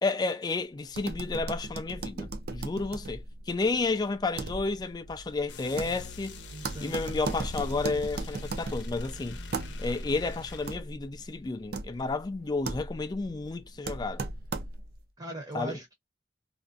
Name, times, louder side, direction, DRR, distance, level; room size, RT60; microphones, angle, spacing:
voice 1, 0.0-6.4 6.8-9.4 9.8-14.3 15.5-15.8, left 3 dB, 20° left, 0.3 m, -31 dB
sound 1, 0.9-15.0, right 2 dB, 55° right, 0.4 m, -38 dB
sound 2, 5.5-10.8, left 3 dB, 90° left, 0.6 m, -43 dB
voice 2, 6.5-7.2 15.2-15.9, right 1 dB, 25° right, 0.7 m, -39 dB
2.5 x 2.1 x 2.4 m
head